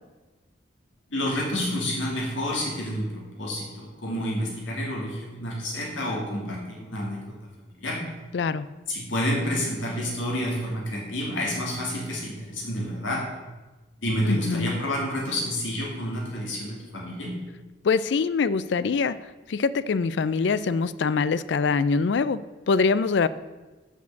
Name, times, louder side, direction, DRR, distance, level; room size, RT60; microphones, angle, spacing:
voice 1, 1.1-7.4 7.7-8.0 8.9-13.2 14.0-17.4, equal, 85° left, -3 dB, 2.4 m, -29 dB
voice 2, 8.3-8.7 14.3-14.8 17.8-19.2 19.5-23.3, left 4 dB, 65° left, 17 dB, 0.4 m, -24 dB
7.2 x 6.4 x 7.0 m, 1.2 s
head